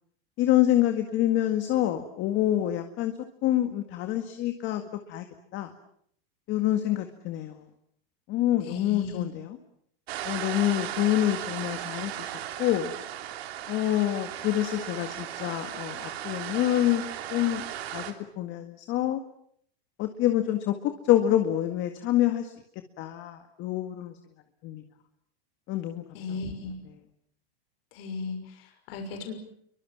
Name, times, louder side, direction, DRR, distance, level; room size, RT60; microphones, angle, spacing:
voice 1, 0.4-3.1 3.4-4.8 5.1-5.3 5.5-5.7 6.5-7.6 8.3-9.6 10.2-12.3 12.6-12.9 13.7-17.0 17.3-17.6 17.9-18.0 18.4-19.2 20.0-22.5 23.0-24.2 24.6-24.8 25.7-26.0, left 13 dB, 40° left, 7 dB, 2.0 m, -26 dB
voice 2, 8.6-9.3 26.1-26.8 27.9-29.3, left 4 dB, 65° left, 5 dB, 6.2 m, -36 dB
sound 1, 10.1-18.1, right 12 dB, 80° right, 3.5 m, -36 dB
29.5 x 24.0 x 7.5 m, 0.68 s
supercardioid pair, 155°, 31 cm